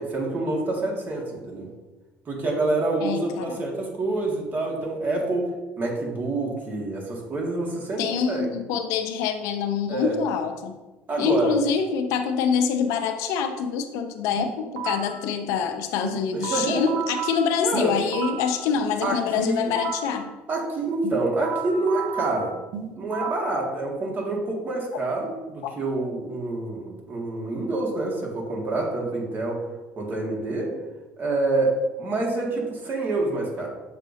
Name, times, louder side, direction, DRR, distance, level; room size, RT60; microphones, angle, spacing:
voice 1, 0.0-1.7 2.3-5.5 5.8-8.5 9.9-10.2 11.1-11.6 16.3-17.0 17.6-17.9 19.0-19.7 20.5-22.5 23.0-29.6 30.0-30.7 31.2-33.7, right 2 dB, 40° right, -2 dB, 2.0 m, -27 dB
voice 2, 3.0-3.6 8.0-10.7 11.2-20.3 23.2-23.3 25.6-25.7, left 6 dB, 80° left, 7 dB, 0.6 m, -25 dB
sound 1, 14.4-15.2 16.0-18.6 19.4-20.2 21.0-23.6, right 8 dB, 85° right, 0.9 m, -33 dB
7.1 x 5.3 x 2.8 m, 1.1 s
supercardioid pair, 100°, 5 cm